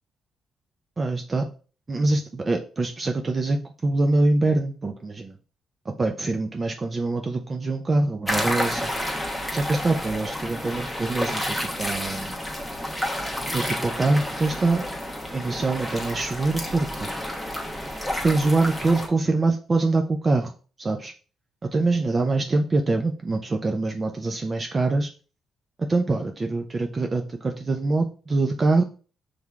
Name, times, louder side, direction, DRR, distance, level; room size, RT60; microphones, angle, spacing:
voice 1, 1.0-1.5 1.9-5.3 5.9-8.9 9.5-12.3 13.5-14.8 15.3-17.1 18.2-20.5 20.8-21.1 21.7-25.1 25.8-28.8, right 2 dB, 30° right, 4 dB, 0.4 m, -24 dB
sound 1, 8.3-19.1, left 1 dB, ahead, 1.0 m, -30 dB
5.4 x 3.3 x 2.4 m, 0.38 s
cardioid pair, 90°, 0 cm